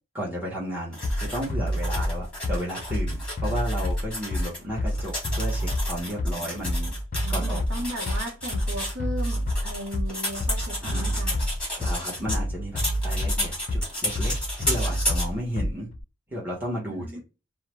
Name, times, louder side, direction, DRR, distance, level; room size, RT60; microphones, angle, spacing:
voice 1, 0.1-6.9 7.3-7.6 10.8-11.2 11.8-14.3 14.6-15.9 16.3-17.2, equal, 10° right, 0.8 m, -33 dB
sound 1, 0.9-4.6 4.9-12.4 12.8-15.3, left 1 dB, 5° left, 1.1 m, -33 dB
Bass drum, 1.0-16.0, equal, 40° left, 0.4 m, -28 dB
voice 2, 6.1-6.5 7.2-11.5 16.9-17.2, equal, 75° right, 0.8 m, -36 dB
2.4 x 2.1 x 3.0 m
head